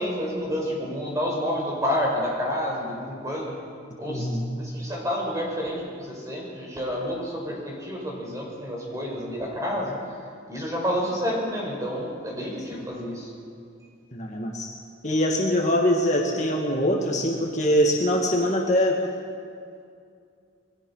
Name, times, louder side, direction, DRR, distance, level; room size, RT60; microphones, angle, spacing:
voice 1, 0.0-3.6 4.0-10.0 10.5-13.3, equal, 15° right, -2 dB, 5.6 m, -29 dB
voice 2, 4.1-4.5 14.1-14.7 15.0-19.0, equal, 35° left, 0 dB, 2.0 m, -23 dB
28.0 x 21.5 x 5.7 m, 2.3 s
head